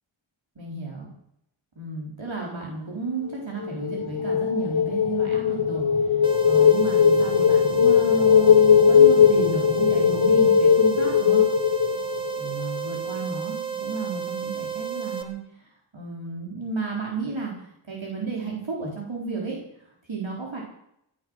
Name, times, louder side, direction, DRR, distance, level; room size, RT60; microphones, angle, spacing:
voice 1, 0.6-1.1 1.8-11.5 12.4-15.7 15.9-20.6, right 4 dB, 70° right, -2 dB, 4.3 m, -33 dB
sound 1, 3.6-12.5, left 7 dB, 80° left, 1.9 m, -19 dB
sound 2, 6.2-15.2, right 7 dB, 10° right, 2.3 m, -32 dB
17.0 x 12.0 x 6.5 m, 0.76 s
wide cardioid pair, 55°, 47 cm